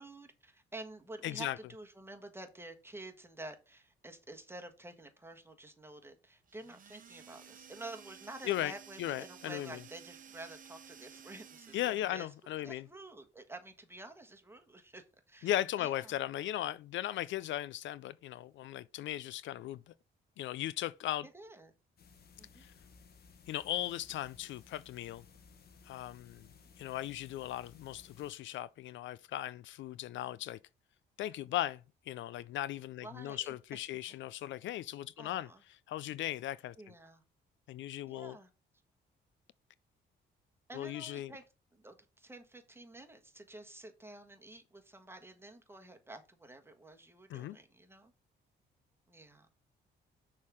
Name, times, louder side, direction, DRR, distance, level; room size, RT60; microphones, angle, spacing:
voice 1, 0.0-12.3 12.6-15.5 15.8-16.1 21.3-21.7 22.4-22.6 33.0-33.5 35.2-35.6 36.8-37.2 38.0-38.5 40.7-41.4 41.7-48.1 49.1-49.5, right 2 dB, 10° right, 1.5 m, -50 dB
voice 2, 1.2-1.6 8.4-8.7 9.0-9.8 11.7-12.9 15.4-19.9 20.4-21.3 22.6-22.7 23.5-25.2 25.9-26.5 26.8-30.6 31.2-36.8 37.7-38.4 40.7-41.3 47.3-47.6, left 13 dB, 70° left, 0.4 m, -37 dB
sound 1, 6.5-12.4, right 8 dB, 45° right, 0.9 m, -55 dB
sound 2, 22.0-28.3, left 5 dB, 50° left, 1.3 m, -59 dB
6.3 x 3.7 x 6.2 m
cardioid pair, 90°, 20 cm